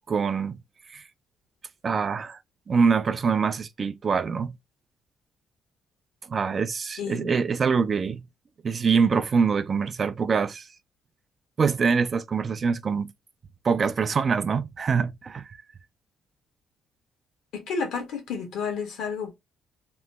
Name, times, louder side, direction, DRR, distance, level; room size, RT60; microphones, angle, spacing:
voice 1, 0.1-0.6 0.9-1.0 1.8-2.4 2.7-4.6 6.3-8.3 8.6-10.7 11.6-13.1 13.6-15.5, right 5 dB, 40° right, 0.4 m, -24 dB
voice 2, 7.0-7.3 17.5-19.3, left 5 dB, 85° left, 1.3 m, -31 dB
3.0 x 2.1 x 3.3 m
cardioid pair, 90°, 0 cm